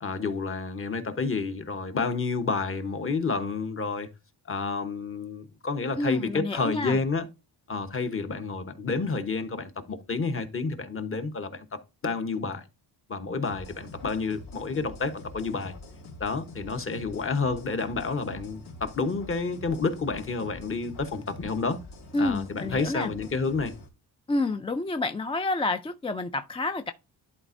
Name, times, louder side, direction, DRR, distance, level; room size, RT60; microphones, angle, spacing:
voice 1, 0.0-4.1 4.5-7.3 7.7-12.6 13.1-15.7 16.2-21.8 22.2-23.7, left 4 dB, 30° left, 1.1 m, -30 dB
voice 2, 6.0-7.0 22.1-23.1 24.3-26.9, left 2 dB, 15° left, 0.3 m, -29 dB
sound 1, 13.4-23.9, left 2 dB, 70° left, 2.9 m, -45 dB
11.0 x 4.3 x 2.6 m
cardioid pair, 125°, 41 cm